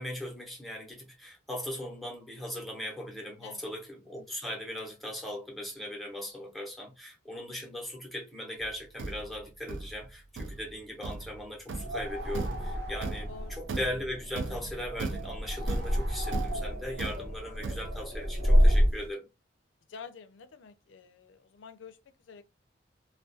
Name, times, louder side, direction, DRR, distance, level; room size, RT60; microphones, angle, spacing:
voice 1, 0.0-13.3 13.6-19.3, left 1 dB, ahead, 0.7 m, -39 dB
voice 2, 3.4-3.7 13.3-13.5 19.9-22.4, left 6 dB, 80° left, 0.4 m, -48 dB
Thump thud, 8.6-18.2, right 3 dB, 75° right, 0.4 m, -38 dB
sound 1, 11.8-19.1, equal, 55° right, 0.7 m, -29 dB
2.3 x 2.2 x 2.5 m
head